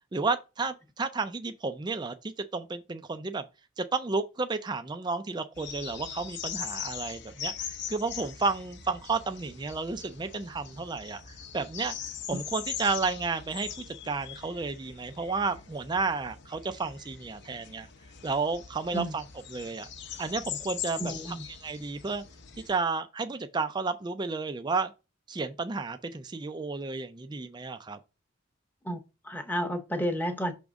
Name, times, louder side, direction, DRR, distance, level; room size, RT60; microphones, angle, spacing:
voice 1, 0.1-3.5 3.8-11.2 11.5-17.9 18.2-19.2 19.5-19.9 20.2-21.1 21.6-22.2 22.7-24.9 25.3-28.0, right 4 dB, 20° right, 0.4 m, -32 dB
sound 1, 5.6-22.8, left 9 dB, 55° left, 0.7 m, -41 dB
voice 2, 21.0-21.4 28.8-30.5, equal, 10° left, 0.8 m, -31 dB
5.9 x 3.5 x 5.1 m
head